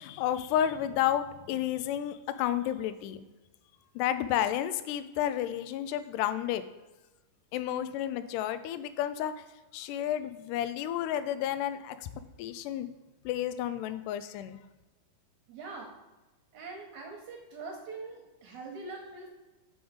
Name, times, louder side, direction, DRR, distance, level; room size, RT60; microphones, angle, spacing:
voice 1, 0.0-3.2 4.0-6.7 7.5-9.3 9.7-12.1 12.4-12.9 13.3-14.6, left 11 dB, 85° left, 11 dB, 1.9 m, -31 dB
voice 2, 15.5-15.9 16.5-19.3, right 3 dB, 70° right, 0 dB, 2.0 m, -43 dB
6.9 x 5.5 x 5.0 m, 1.1 s
omnidirectional pair, 4.2 m